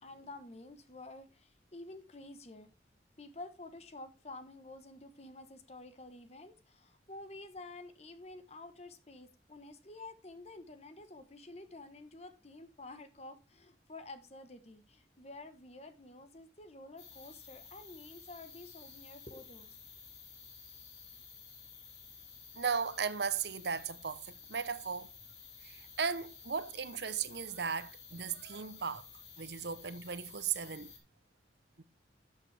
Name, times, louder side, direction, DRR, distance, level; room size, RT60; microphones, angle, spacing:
voice 1, 0.0-2.7 3.2-19.8, left 2 dB, 35° left, 1.0 m, -50 dB
sound 1, 17.0-31.0, left 5 dB, 75° left, 3.2 m, -53 dB
voice 2, 22.5-25.1 25.6-29.1 29.4-30.9 31.8-31.9, right 6 dB, 70° right, 0.8 m, -36 dB
12.5 x 7.4 x 3.3 m
head